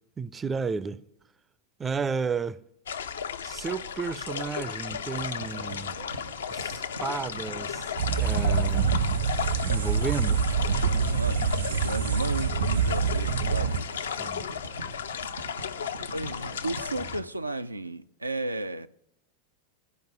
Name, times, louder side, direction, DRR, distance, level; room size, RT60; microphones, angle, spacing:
voice 1, 0.2-1.0 1.8-2.6 3.4-5.9 6.5-7.9 8.2-9.0 9.6-10.4 14.2-14.5, right 5 dB, 20° right, 0.4 m, -32 dB
sound 1, 2.9-17.2, left 7 dB, 65° left, 0.5 m, -35 dB
sound 2, 4.9-17.2, right 1 dB, 90° left, 0.9 m, -42 dB
sound 3, 8.0-13.8, right 6 dB, 65° right, 0.8 m, -26 dB
voice 2, 11.0-14.2 16.1-18.9, right 2 dB, 85° right, 0.4 m, -34 dB
14.5 x 5.3 x 9.1 m
figure-of-eight pair, 90°, 0 cm